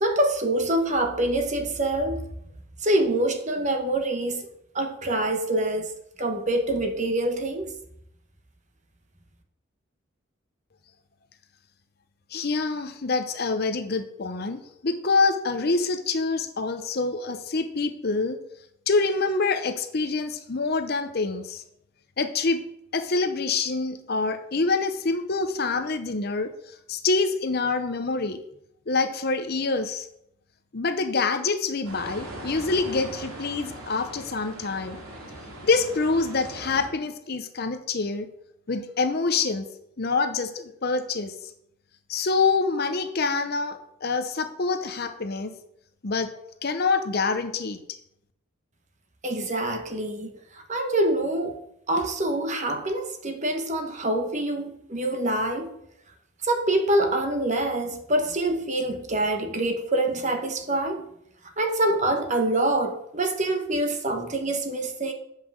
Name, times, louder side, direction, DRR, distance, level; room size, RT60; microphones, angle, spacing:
voice 1, 0.0-2.2 2.8-4.5 4.7-5.9 6.2-7.7 49.2-51.6 51.9-55.7 56.4-61.0 61.6-65.1, right 1 dB, 35° right, 4 dB, 1.1 m, -25 dB
voice 2, 12.3-18.4 18.9-21.6 22.2-22.6 22.9-28.4 28.9-30.1 30.7-35.0 35.6-38.3 38.7-39.7 40.0-41.3 42.1-45.5 46.0-46.3 46.6-47.8, left 4 dB, 45° left, 9 dB, 0.7 m, -26 dB
sound 1, 31.8-36.9, right 1 dB, 85° right, 2.6 m, -40 dB
8.2 x 5.7 x 6.1 m, 0.77 s
head